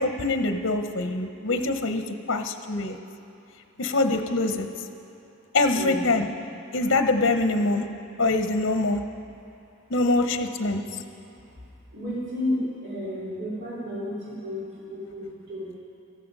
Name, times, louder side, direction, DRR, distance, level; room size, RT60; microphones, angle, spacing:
voice 1, 0.0-2.0 2.3-3.0 3.8-4.7 5.5-6.3 6.7-7.9 8.2-9.0 9.9-10.8, left 2 dB, 60° left, 6 dB, 0.8 m, -24 dB
voice 2, 5.7-6.1 11.3-11.5 11.9-15.7, left 1 dB, 50° right, -8 dB, 3.4 m, -32 dB
17.0 x 14.0 x 5.4 m, 2.7 s
head